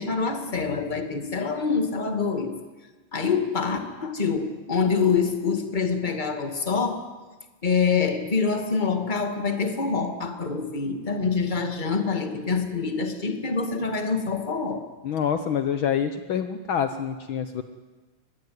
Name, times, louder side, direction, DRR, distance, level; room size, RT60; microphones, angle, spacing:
voice 1, 0.0-2.5 3.1-7.1 7.6-14.8, left 5 dB, 20° left, 6 dB, 1.7 m, -26 dB
voice 2, 15.0-17.6, left 8 dB, 80° left, 9 dB, 1.1 m, -26 dB
23.5 x 20.5 x 9.5 m, 1.3 s
omnidirectional pair, 3.7 m